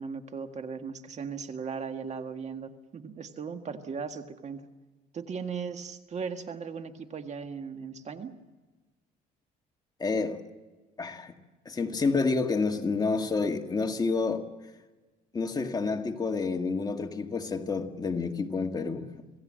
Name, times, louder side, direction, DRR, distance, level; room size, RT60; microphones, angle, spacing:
voice 1, 0.0-4.6 5.1-8.3, right 5 dB, 45° right, 1.8 m, -37 dB
voice 2, 10.0-10.4 11.0-11.3 11.7-14.4 15.3-19.1, left 4 dB, 25° left, 1.9 m, -29 dB
27.0 x 17.0 x 7.6 m
cardioid pair, 110°, 17 cm